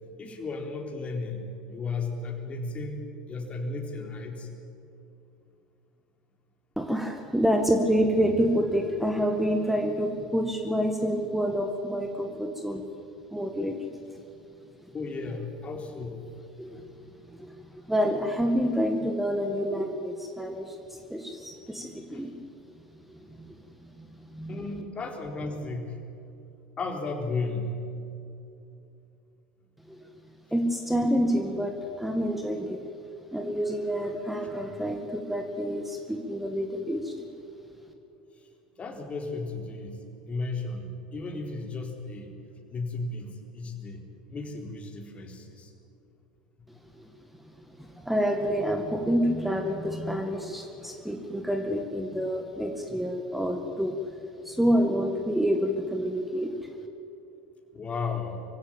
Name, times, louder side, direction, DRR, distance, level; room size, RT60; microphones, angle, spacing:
voice 1, 0.2-4.5 14.9-16.2 22.1-22.2 24.5-26.0 26.8-27.8 34.4-34.6 38.4-38.5 38.8-40.0 40.3-42.3 42.7-45.7 57.7-58.5, left 3 dB, 30° left, 3 dB, 3.9 m, -34 dB
voice 2, 6.8-12.8 13.3-14.0 16.6-16.8 17.3-22.3 23.1-23.6 23.9-24.6 29.9-30.1 30.5-32.8 33.3-37.3 47.0-47.1 47.8-56.7, equal, 5° right, 4 dB, 2.0 m, -28 dB
24.0 x 16.0 x 8.8 m, 2.7 s
figure-of-eight pair, 75°, 4 cm